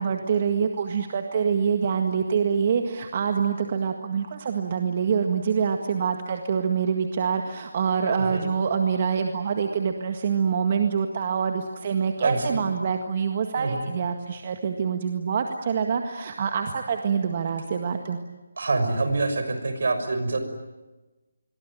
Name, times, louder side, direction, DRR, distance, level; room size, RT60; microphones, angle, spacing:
voice 1, 0.0-18.2, right 6 dB, 35° right, 5 dB, 1.8 m, -25 dB
voice 2, 12.2-12.6 13.6-13.9 18.6-20.4, right 3 dB, 65° right, 8 dB, 6.1 m, -26 dB
27.0 x 23.0 x 9.2 m, 1.1 s
hypercardioid pair, 165°, 0 cm